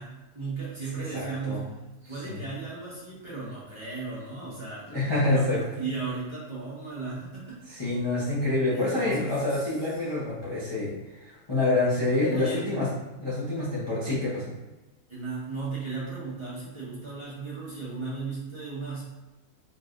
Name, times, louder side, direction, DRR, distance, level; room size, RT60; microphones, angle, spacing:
voice 1, 0.0-1.7 2.0-7.6 8.7-9.6 12.3-12.7 15.1-19.0, right 4 dB, 20° right, -9 dB, 1.1 m, -36 dB
voice 2, 1.1-1.7 2.0-2.4 4.9-5.6 7.7-12.9 13.2-14.5, left 2 dB, 25° left, -9 dB, 0.7 m, -27 dB
4.2 x 3.1 x 2.5 m, 1.1 s
omnidirectional pair, 1.5 m